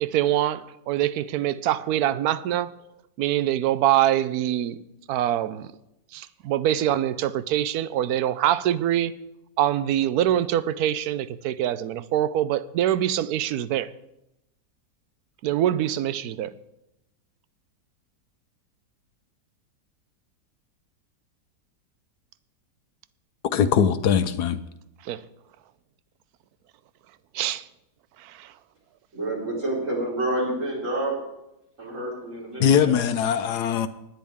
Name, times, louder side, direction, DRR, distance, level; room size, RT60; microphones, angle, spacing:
voice 1, 0.0-2.7 3.2-4.8 5.1-5.7 6.1-9.2 9.6-13.9 15.4-16.5 25.0-25.2 27.3-27.6 28.2-28.5, right 12 dB, 70° right, 1.0 m, -24 dB
voice 2, 23.5-24.6 32.6-33.9, left 8 dB, 70° left, 1.2 m, -21 dB
voice 3, 29.1-31.2 31.8-33.0, right 1 dB, 45° right, 4.8 m, -28 dB
19.0 x 10.5 x 3.6 m
omnidirectional pair, 1.9 m